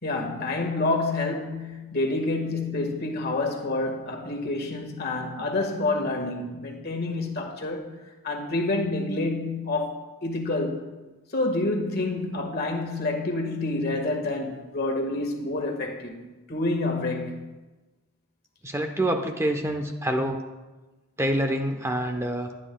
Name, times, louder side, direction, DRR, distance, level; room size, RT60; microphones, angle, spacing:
voice 1, 0.0-7.9 8.2-10.9 11.3-17.5, left 2 dB, 45° left, 1.7 m, -28 dB
voice 2, 18.6-20.4 21.2-22.5, right 1 dB, 10° right, 0.9 m, -26 dB
21.5 x 10.0 x 2.3 m
head